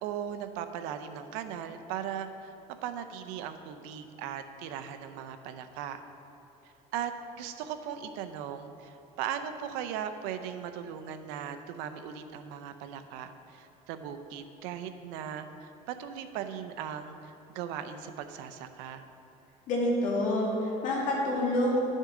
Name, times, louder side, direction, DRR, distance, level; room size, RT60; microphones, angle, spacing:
voice 1, 0.0-2.5 2.8-6.0 6.9-7.1 7.4-19.1, right 9 dB, 85° right, 9 dB, 0.6 m, -38 dB
voice 2, 19.7-21.8, left 1 dB, 55° left, -3 dB, 2.1 m, -27 dB
11.0 x 6.4 x 3.7 m, 2.8 s
cardioid pair, 140°, 16 cm